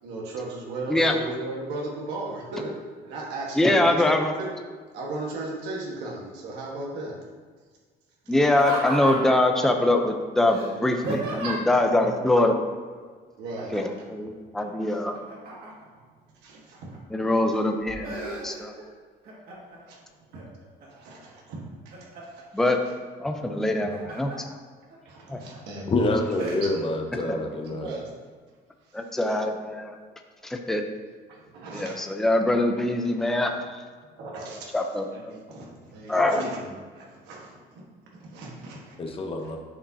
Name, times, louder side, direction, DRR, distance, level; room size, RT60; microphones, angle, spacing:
voice 1, 0.0-2.8 3.0-4.5 4.9-7.2 11.0-11.4 11.9-12.3 13.4-13.8 14.9-15.0 16.4-17.0 19.7-20.0 20.3-20.4 20.9-22.6 23.2-23.3 23.8-23.9 25.0-26.2 26.5-28.1 28.9-29.0 31.3-32.0 34.1-34.8 35.1-37.8 38.1-38.9, right 2 dB, 90° right, -2 dB, 1.4 m, -37 dB
voice 2, 3.6-4.3 8.3-12.6 13.7-15.2 17.1-18.7 22.5-22.8 23.2-24.5 25.3-25.4 27.3-27.4 28.9-29.9 30.4-30.8 31.7-33.8 34.7-35.3 36.1-36.4, left 1 dB, ahead, 4 dB, 0.6 m, -23 dB
Laughter, 8.4-9.5 10.5-11.8 13.6-14.0 14.4-16.0 16.5-17.2 17.6-18.9 19.2-19.8 20.3-21.1 21.6-22.4 23.6-24.4 24.9-25.0 25.5-25.8 26.4-26.6, right 2 dB, 65° right, 1.9 m, -35 dB
voice 3, 25.9-27.9 39.0-39.6, left 2 dB, 35° left, 3 dB, 1.0 m, -27 dB
10.0 x 4.9 x 2.7 m, 1.5 s
cardioid pair, 110°, 17 cm